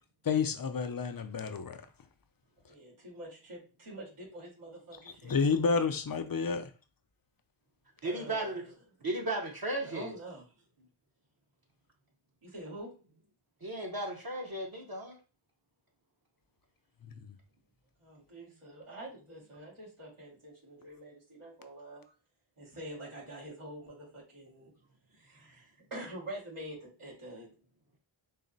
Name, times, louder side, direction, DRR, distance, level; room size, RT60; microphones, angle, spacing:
voice 1, 0.2-1.9 5.1-6.7 17.0-17.4, left 5 dB, 45° left, 0.5 m, -30 dB
voice 2, 2.7-5.4 8.0-8.7 9.9-10.5 12.4-12.9 18.0-22.1 22.6-24.7 25.1-27.5, right 1 dB, 90° right, 2.1 m, -46 dB
voice 3, 8.0-8.6 9.0-10.1 13.6-15.2, right 1 dB, 45° right, 0.9 m, -35 dB
4.0 x 2.1 x 3.9 m
wide cardioid pair, 45°, 50 cm